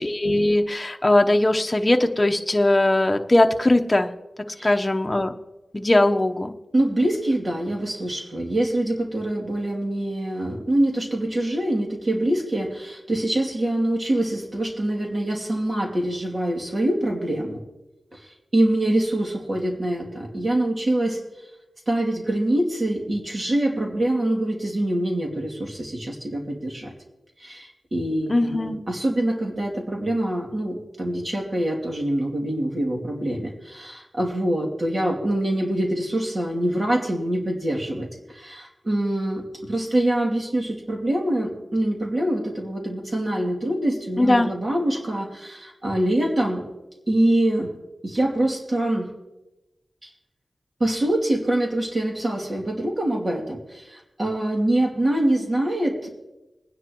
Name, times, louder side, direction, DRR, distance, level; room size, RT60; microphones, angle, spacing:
voice 1, 0.0-4.1 4.6-5.3 5.7-6.5 28.3-28.8 44.2-44.5, left 1 dB, 25° left, 4 dB, 1.0 m, -20 dB
voice 2, 6.7-17.6 18.1-21.2 21.9-26.9 27.4-46.6 47.1-47.7 48.0-49.1 50.0-50.1 50.8-56.1, right 1 dB, 45° right, 0 dB, 2.6 m, -24 dB
22.0 x 10.0 x 3.1 m, 1.0 s
cardioid pair, 55°, 0 cm